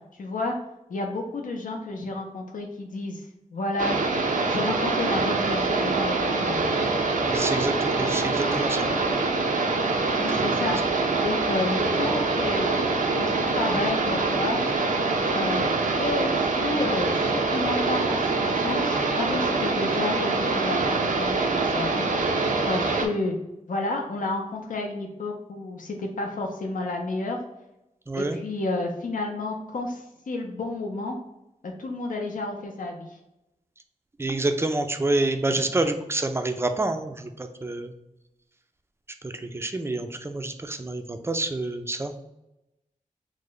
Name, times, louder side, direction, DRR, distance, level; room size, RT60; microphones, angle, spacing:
voice 1, 0.2-0.5 0.9-4.0 4.5-6.6 10.2-10.8 11.2-12.7 13.1-14.6 15.3-22.1 22.6-23.4 23.7-27.4 28.2-31.2 31.8-33.1, left 2 dB, 80° left, 1 dB, 0.5 m, -31 dB
sound 1, 3.8-23.1, right 3 dB, 75° right, 0.5 m, -24 dB
voice 2, 7.3-8.9 10.3-10.5 28.1-28.4 34.2-37.9 39.2-42.2, right 2 dB, 20° right, 7 dB, 0.4 m, -28 dB
3.2 x 2.1 x 3.7 m, 0.90 s
wide cardioid pair, 95°, 14 cm